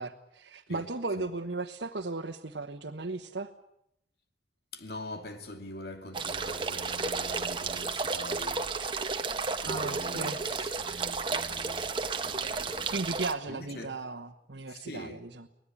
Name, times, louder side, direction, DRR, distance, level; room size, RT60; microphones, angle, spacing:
voice 1, 0.0-3.5 9.6-10.4 12.9-15.5, right 3 dB, 70° right, 1.3 m, -36 dB
voice 2, 4.7-8.8 9.2-13.1 13.5-13.9 14.7-15.2, equal, 60° left, 2.7 m, -44 dB
sound 1, 6.1-13.3, right 4 dB, 25° right, 1.3 m, -32 dB
24.5 x 19.0 x 9.8 m
head